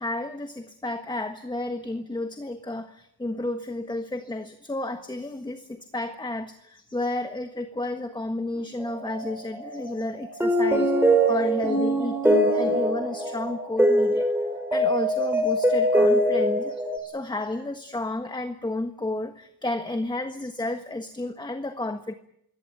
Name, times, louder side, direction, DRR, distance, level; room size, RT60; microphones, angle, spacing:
voice 1, 0.0-14.3 14.7-22.1, left 2 dB, 10° left, 7 dB, 1.4 m, -32 dB
sound 1, 8.8-17.0, equal, 5° right, 4.4 m, -23 dB
23.5 x 17.5 x 8.9 m, 0.73 s
wide cardioid pair, 130°, 39 cm